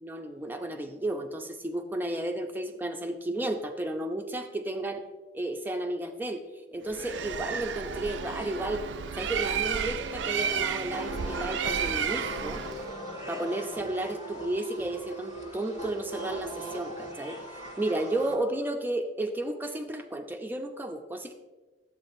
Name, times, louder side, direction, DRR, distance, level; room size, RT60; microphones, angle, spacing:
voice 1, 0.0-5.0 5.3-6.4 6.7-8.8 9.2-12.6 13.3-21.3, right 1 dB, 10° right, 4 dB, 0.5 m, -33 dB
sound 1, 6.7-18.7, left 2 dB, 75° left, 1.0 m, -48 dB
Bird, 6.9-12.9, right 7 dB, 70° right, 0.4 m, -32 dB
sound 2, 10.9-18.4, right 1 dB, 40° left, 1.5 m, -40 dB
11.5 x 7.9 x 2.6 m, 1.2 s
head